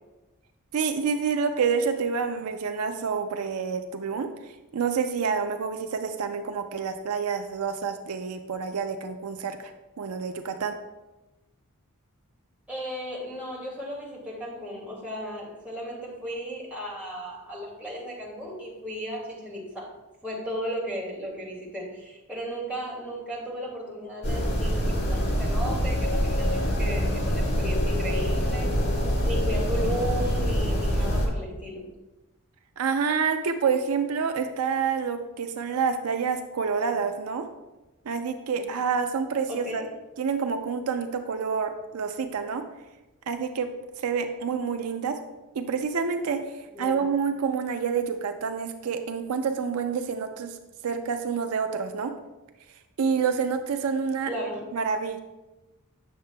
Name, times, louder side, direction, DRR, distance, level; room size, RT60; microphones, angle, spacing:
voice 1, 0.7-9.7 10.0-10.7 32.8-37.5 38.1-39.8 40.2-42.6 43.3-43.7 44.0-45.2 45.6-50.6 50.8-52.1 53.0-54.3 54.7-55.2, right 6 dB, 75° right, 7 dB, 0.4 m, -28 dB
voice 2, 12.7-19.9 20.2-28.7 29.2-31.9 39.5-39.9 46.7-47.1 54.2-54.6, equal, 5° right, -6 dB, 2.2 m, -35 dB
sound 1, 24.2-31.3, equal, 50° left, 1.7 m, -25 dB
8.8 x 6.6 x 2.2 m, 1.1 s
head